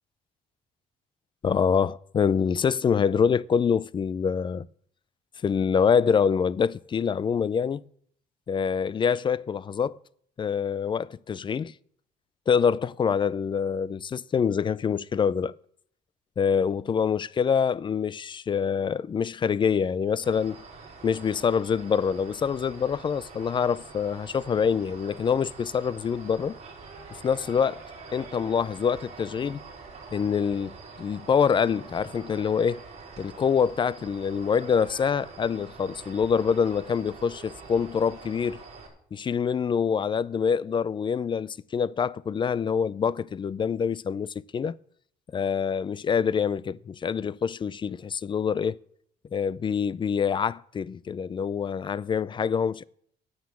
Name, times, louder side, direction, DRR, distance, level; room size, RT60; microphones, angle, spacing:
voice 1, 1.4-4.7 5.4-7.8 8.5-10.0 10.4-11.7 12.5-15.5 16.4-20.6 21.0-26.6 27.1-27.8 28.1-29.6 30.1-32.8 33.2-38.6 39.1-44.8 45.3-48.8 49.3-52.8, left 6 dB, 30° left, 0.4 m, -25 dB
sound 1, 20.2-38.9, right 4 dB, 40° right, 5.2 m, -45 dB
9.6 x 9.3 x 8.4 m
cardioid pair, 110°, 17 cm